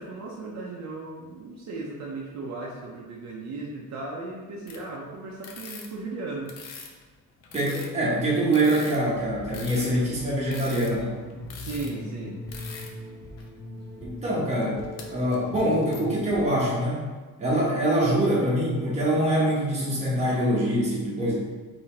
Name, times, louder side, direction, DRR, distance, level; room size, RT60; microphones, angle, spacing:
voice 1, 0.0-6.5 11.5-12.4, right 3 dB, 55° right, -3 dB, 0.8 m, -36 dB
sound 1, 4.7-5.0 5.4-7.1 7.4-12.0 12.5-13.0 13.4-13.5 14.5-15.1 15.3-16.2, left 5 dB, 55° left, 0.7 m, -43 dB
voice 2, 7.5-11.2 14.0-17.0 17.4-21.5, right 1 dB, 20° right, -6 dB, 1.1 m, -24 dB
sound 2, 9.1-16.9, left 1 dB, 10° left, 0.4 m, -41 dB
4.0 x 3.0 x 4.3 m, 1.3 s
cardioid pair, 165°, 33 cm